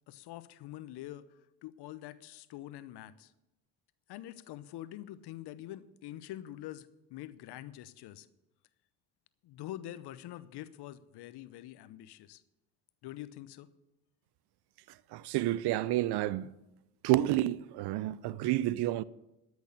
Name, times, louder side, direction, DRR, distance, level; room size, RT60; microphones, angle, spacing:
voice 1, 0.1-3.3 4.1-8.3 9.4-12.4 13.0-13.7, left 13 dB, 65° left, 0.9 m, -45 dB
voice 2, 15.1-16.5 17.0-19.0, right 15 dB, 60° right, 0.6 m, -29 dB
13.0 x 6.4 x 8.2 m
hypercardioid pair, 55°, 44 cm